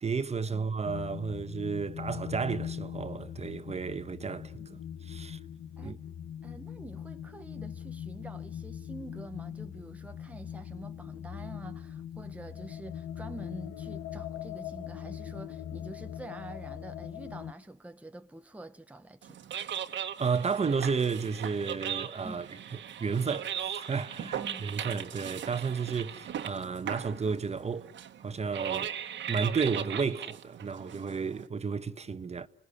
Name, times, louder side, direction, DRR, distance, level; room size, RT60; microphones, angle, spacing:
voice 1, 0.0-5.4 5.8-6.0 20.2-22.5 23.0-27.9 28.2-28.9 29.3-32.5, right 5 dB, 35° right, 1.1 m, -32 dB
sound 1, 0.8-17.5, left 9 dB, 80° left, 1.2 m, -41 dB
voice 2, 6.4-19.4 22.2-22.5 24.2-24.7, right 1 dB, 5° right, 1.0 m, -47 dB
sound 2, 19.2-31.5, right 9 dB, 70° right, 1.6 m, -38 dB
29.5 x 20.0 x 10.0 m
cardioid pair, 90°, 20 cm